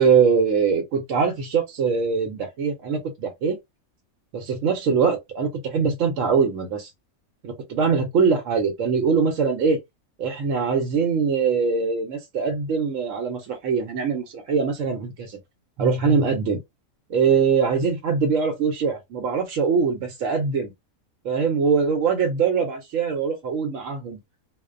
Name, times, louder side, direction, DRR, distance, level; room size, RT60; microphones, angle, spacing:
voice 1, 0.0-3.6 4.3-6.9 7.4-9.8 10.2-15.4 15.8-16.6 17.1-20.7 21.2-24.2, right 5 dB, 65° right, 0.9 m, -22 dB
2.4 x 2.1 x 2.4 m
omnidirectional pair, 1.5 m